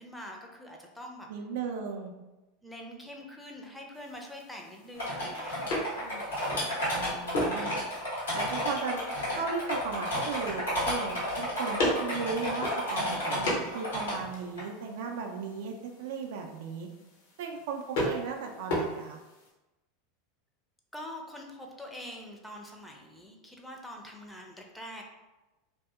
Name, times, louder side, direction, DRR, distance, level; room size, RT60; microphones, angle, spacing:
voice 1, 0.0-1.3 2.6-7.6 20.9-25.0, left 1 dB, 5° left, 1 dB, 0.5 m, -45 dB
voice 2, 1.3-2.1 6.9-7.7 8.3-9.0 9.3-16.9 17.4-19.2, right 5 dB, 65° right, 3 dB, 0.3 m, -36 dB
sound 1, 3.9-19.5, left 1 dB, 65° left, 0.8 m, -37 dB
sound 2, 5.0-14.1 14.6-14.7, equal, 85° left, 1.2 m, -32 dB
2.6 x 2.6 x 2.3 m, 1.1 s
figure-of-eight pair, 85°, 0 cm